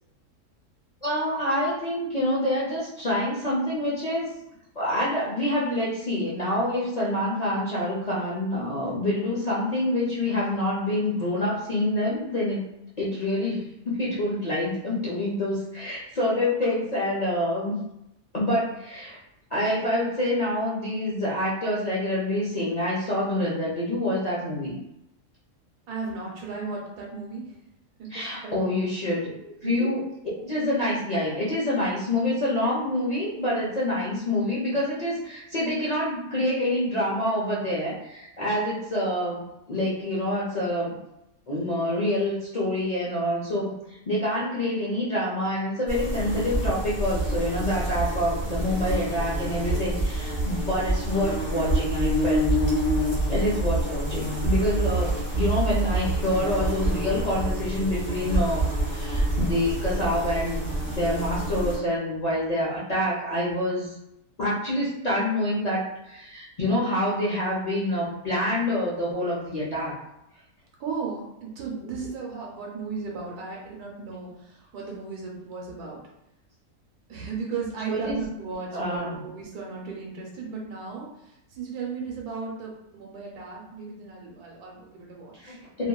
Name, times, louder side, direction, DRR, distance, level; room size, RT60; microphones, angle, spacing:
voice 1, 1.0-4.3 4.8-12.7 13.0-17.8 18.3-19.2 19.5-24.8 28.1-30.0 30.4-41.0 41.5-52.5 53.3-63.9 64.4-70.0 77.9-78.2 78.7-79.2 85.4-85.9, left 1 dB, 75° left, -8 dB, 0.3 m, -27 dB
voice 2, 25.9-27.5 28.1-28.7 29.6-30.0 70.8-76.0 77.1-85.6, right 5 dB, 80° right, -2 dB, 1.2 m, -35 dB
sound 1, 45.9-61.8, right 1 dB, 15° left, 1.4 m, -27 dB
2.8 x 2.5 x 2.3 m, 0.85 s
omnidirectional pair, 1.6 m